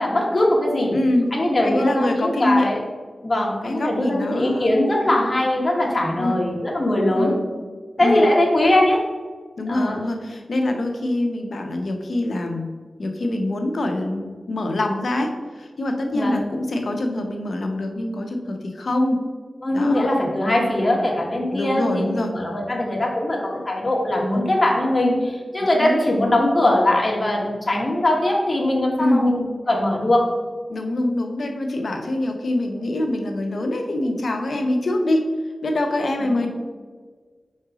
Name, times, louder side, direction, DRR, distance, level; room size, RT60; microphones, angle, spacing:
voice 1, 0.0-1.0 1.3-2.8 3.2-7.3 8.0-9.0 9.7-10.0 16.1-16.4 19.6-30.3 36.3-36.4, left 1 dB, 30° left, -2 dB, 1.6 m, -21 dB
voice 2, 0.9-1.3 1.6-2.7 3.6-4.7 6.2-6.5 7.1-7.4 8.0-8.3 9.6-12.7 13.0-19.2 19.7-20.1 21.5-22.3 25.6-26.0 29.0-29.4 30.7-35.3 35.6-36.5, left 1 dB, 70° left, 4 dB, 0.8 m, -24 dB
4.9 x 4.3 x 4.9 m, 1.5 s
wide cardioid pair, 60°, 0 cm